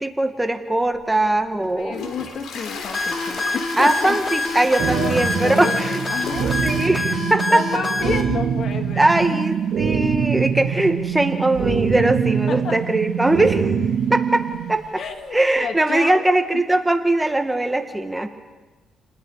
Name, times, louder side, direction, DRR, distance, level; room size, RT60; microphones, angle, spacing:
voice 1, 0.0-2.0 3.8-6.1 6.6-7.6 9.0-13.7 14.1-15.0 15.3-18.3, right 1 dB, 10° right, 7 dB, 1.8 m, -20 dB
Toilet flush, 0.9-15.6, left 4 dB, 75° left, 3.4 m, -38 dB
voice 2, 1.8-4.2 4.9-5.8 6.1-6.5 7.5-9.4 12.5-12.8 15.0-16.2 16.5-16.6, left 5 dB, 60° left, 6 dB, 2.4 m, -30 dB
sound 1, 2.9-8.2, left 2 dB, 20° left, 4.2 m, -26 dB
sound 2, 4.8-14.8, right 7 dB, 75° right, 1.9 m, -24 dB
30.0 x 20.0 x 5.0 m, 1.2 s
cardioid pair, 90°, 0 cm